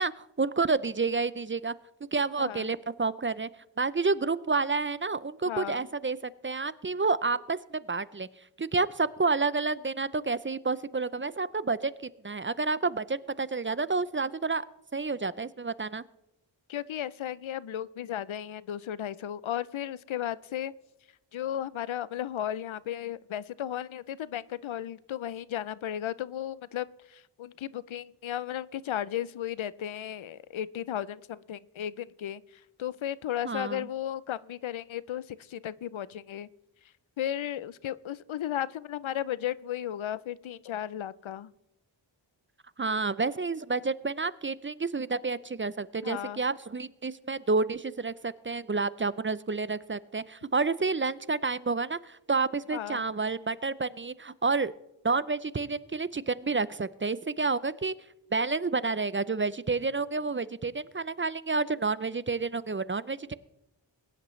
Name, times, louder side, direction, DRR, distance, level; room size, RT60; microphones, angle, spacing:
voice 1, 0.0-1.7 2.1-3.5 3.8-8.3 8.6-11.9 12.2-14.6 14.9-16.0 33.4-33.9 42.8-54.7 55.0-57.9 58.3-63.3, right 4 dB, 25° right, 17 dB, 0.4 m, -29 dB
voice 2, 5.5-5.8 16.7-20.7 21.3-32.4 32.8-36.5 37.2-41.5 46.0-46.4 52.7-53.0, left 11 dB, 90° left, 19 dB, 0.5 m, -35 dB
21.5 x 10.5 x 3.1 m, 0.91 s
wide cardioid pair, 50°, 46 cm